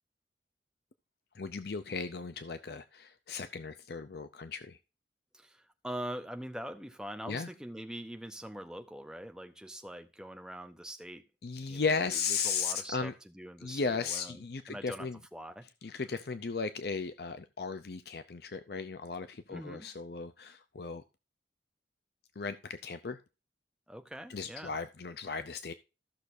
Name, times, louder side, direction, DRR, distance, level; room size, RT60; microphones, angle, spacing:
voice 1, 1.3-4.8 7.3-7.5 11.4-13.1 13.6-15.2 15.8-21.0 22.4-23.2 24.3-25.7, left 5 dB, 60° left, 0.5 m, -36 dB
voice 2, 5.3-11.2 11.7-14.4 14.7-15.7 19.5-19.9 23.9-24.7, equal, 5° right, 0.8 m, -43 dB
14.5 x 6.4 x 2.6 m
head